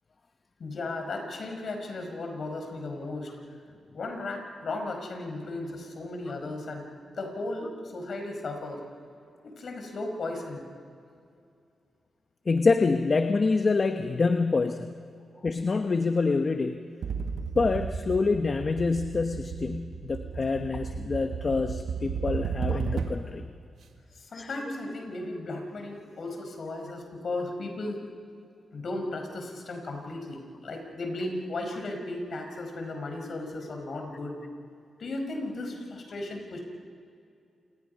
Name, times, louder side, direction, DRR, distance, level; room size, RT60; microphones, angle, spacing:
voice 1, 0.6-3.4 3.9-6.9 7.2-8.8 9.4-10.7 24.1-28.0 28.7-34.4 35.0-36.6, left 2 dB, 60° left, 3 dB, 5.2 m, -35 dB
voice 2, 12.5-15.1 15.4-16.8 17.5-23.5 24.3-24.5, left 4 dB, 45° left, 7 dB, 1.0 m, -26 dB
sound 1, 17.0-23.4, right 6 dB, 80° right, 1.4 m, -34 dB
28.0 x 20.0 x 5.5 m, 2.4 s
cardioid pair, 70°, 0 cm